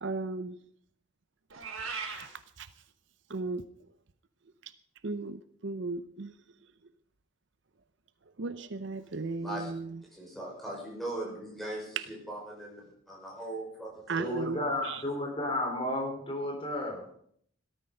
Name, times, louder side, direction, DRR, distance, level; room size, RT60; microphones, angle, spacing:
voice 1, 0.0-0.6 2.6-2.7 3.3-3.6 5.0-6.3 8.4-10.0 12.0-12.1 14.1-15.0, right 3 dB, 60° right, 13 dB, 0.6 m, -35 dB
Meow, 1.5-2.3, right 5 dB, 75° right, 3.7 m, -37 dB
voice 2, 9.4-9.7 10.1-14.4, right 1 dB, ahead, -3 dB, 5.6 m, -40 dB
voice 3, 14.2-17.2, left 1 dB, 25° left, 1 dB, 4.2 m, -33 dB
17.5 x 13.0 x 5.4 m, 0.65 s
head